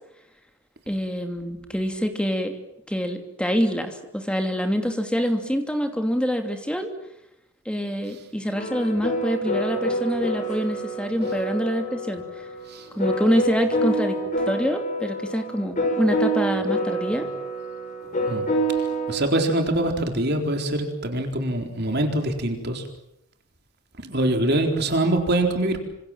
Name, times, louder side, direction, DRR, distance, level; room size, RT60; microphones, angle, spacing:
voice 1, 0.9-2.6 2.9-6.9 7.6-12.5 12.9-14.2 14.4-17.3, equal, 5° left, 5 dB, 2.8 m, -25 dB
sound 1, 8.5-19.2, right 1 dB, 35° left, 5.6 m, -27 dB
voice 2, 19.1-22.9 24.0-25.8, right 1 dB, 50° right, 4 dB, 4.0 m, -24 dB
28.0 x 26.5 x 7.5 m, 0.77 s
head